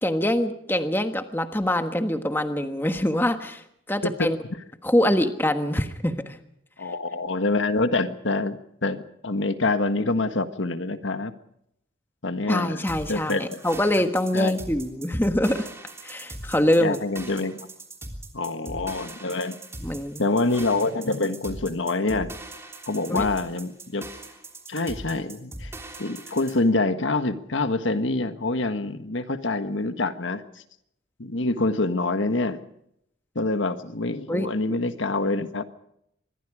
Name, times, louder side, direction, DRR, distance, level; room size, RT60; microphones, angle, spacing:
voice 1, 0.0-4.4 4.8-6.4 12.5-15.7 16.0-17.0 19.8-20.2 23.1-23.2 34.3-34.5, left 1 dB, 10° left, 7 dB, 1.4 m, -24 dB
voice 2, 6.8-11.3 12.2-12.8 13.1-13.6 14.3-14.5 16.8-17.7 18.3-19.6 20.2-22.3 22.9-24.1 24.7-25.7 26.0-30.4 31.2-32.6 33.3-35.6, left 2 dB, 80° left, 9 dB, 1.5 m, -26 dB
sound 1, 12.9-26.6, right 2 dB, 15° right, 3.4 m, -40 dB
25.5 x 22.5 x 5.0 m, 0.75 s
head